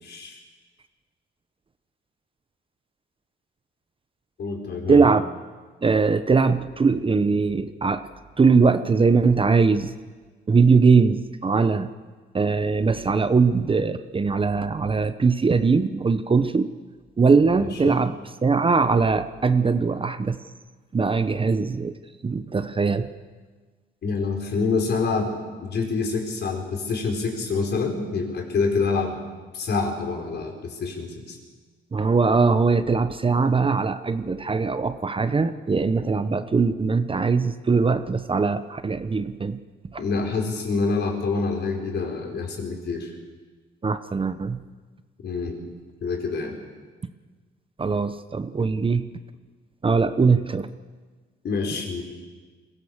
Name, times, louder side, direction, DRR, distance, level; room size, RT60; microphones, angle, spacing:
voice 1, 0.0-0.4 4.4-5.0 17.5-18.0 24.0-25.3 25.6-29.1 29.5-31.4 40.0-43.1 45.2-45.6 46.0-46.5 51.4-52.0, left 4 dB, 60° left, 2 dB, 4.8 m, -26 dB
voice 2, 4.9-5.2 5.8-8.1 8.4-9.9 10.5-11.9 12.3-16.7 17.2-18.1 18.4-20.4 20.9-21.9 22.2-23.1 31.9-39.6 39.9-40.0 43.8-44.6 47.8-49.0 49.8-50.7, right 4 dB, 25° right, 11 dB, 0.9 m, -21 dB
22.0 x 16.5 x 7.3 m, 1.4 s
cardioid pair, 90°, 20 cm